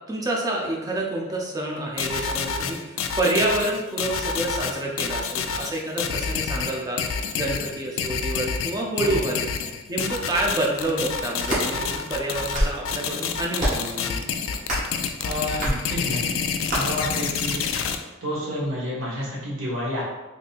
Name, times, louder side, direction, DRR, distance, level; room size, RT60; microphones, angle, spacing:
voice 1, 0.1-9.5 9.9-14.2, right 1 dB, 15° right, -2 dB, 0.5 m, -28 dB
sound 1, 2.0-18.0, left 6 dB, 70° left, 0.3 m, -28 dB
sound 2, 11.4-11.7 12.3-12.8 13.6-13.9 14.6-15.0 15.6-15.8 16.7-16.8, equal, 40° right, 1.2 m, -25 dB
voice 2, 15.2-16.3 16.7-17.7 18.2-20.0, equal, 70° right, -6 dB, 1.3 m, -29 dB
3.7 x 2.7 x 2.4 m, 1.2 s
head